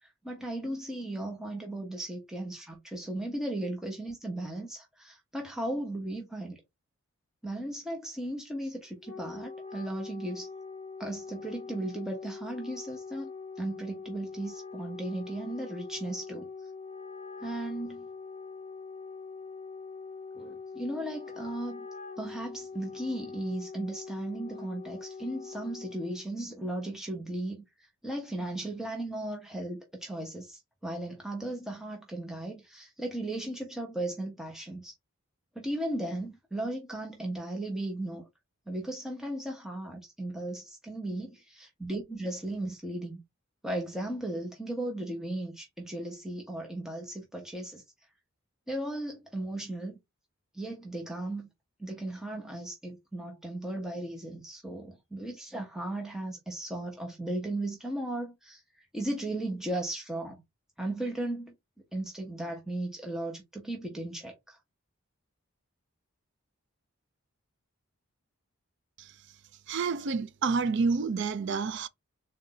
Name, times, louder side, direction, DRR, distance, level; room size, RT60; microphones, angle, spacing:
voice 1, 0.0-6.6 7.4-10.5 11.0-13.3 13.6-16.5 17.4-18.1 20.4-21.9 22.2-27.6 28.0-34.9 35.5-38.2 38.7-43.2 43.6-47.8 48.7-49.9 50.5-51.5 51.8-60.4 60.8-61.5 61.9-64.6, right 1 dB, ahead, 0.9 m, -36 dB
Wind instrument woodwind instrument, 8.8-26.3, left 4 dB, 35° left, 1.0 m, -43 dB
voice 2, 69.7-71.9, right 4 dB, 55° right, 0.4 m, -29 dB
3.9 x 2.7 x 3.8 m
head